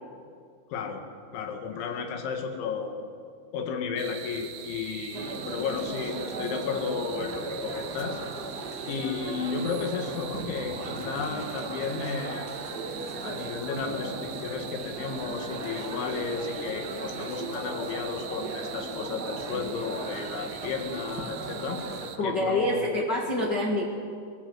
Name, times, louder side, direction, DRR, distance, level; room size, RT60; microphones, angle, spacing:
voice 1, 0.7-1.0 1.3-3.1 3.5-8.2 8.9-12.5 13.2-21.8 22.2-22.9, left 5 dB, 80° left, 5 dB, 4.3 m, -33 dB
sound 1, 4.0-22.2, right 9 dB, 70° right, 2.4 m, -43 dB
sound 2, 5.1-22.1, right 2 dB, 40° right, 1.3 m, -37 dB
voice 2, 22.2-23.9, left 1 dB, 60° left, 0 dB, 1.0 m, -26 dB
21.5 x 20.5 x 7.9 m, 2.3 s
omnidirectional pair, 5.4 m